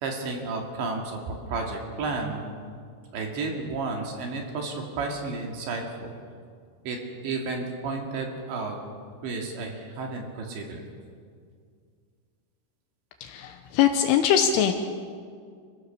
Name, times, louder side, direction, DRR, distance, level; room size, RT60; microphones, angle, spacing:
voice 1, 0.0-2.4 3.1-6.2 6.9-7.0 7.2-8.8 9.2-10.8, right 3 dB, 65° right, 1 dB, 4.3 m, -32 dB
voice 2, 13.2-14.7, left 9 dB, 80° left, 6 dB, 3.4 m, -22 dB
28.5 x 16.0 x 6.9 m, 2.1 s
omnidirectional pair, 5.7 m